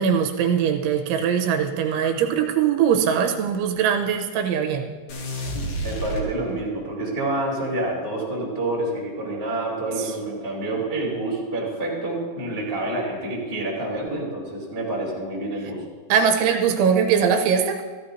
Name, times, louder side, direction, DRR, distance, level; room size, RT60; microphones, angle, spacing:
voice 1, 0.0-4.9 6.5-6.6 10.0-10.2 16.1-17.8, right 7 dB, 80° right, 4 dB, 3.3 m, -21 dB
sound 1, 5.1-6.9, right 1 dB, 60° left, 2.1 m, -30 dB
voice 2, 5.5-15.8, right 2 dB, 5° right, -7 dB, 3.3 m, -28 dB
15.5 x 15.0 x 2.8 m, 1.4 s
omnidirectional pair, 5.5 m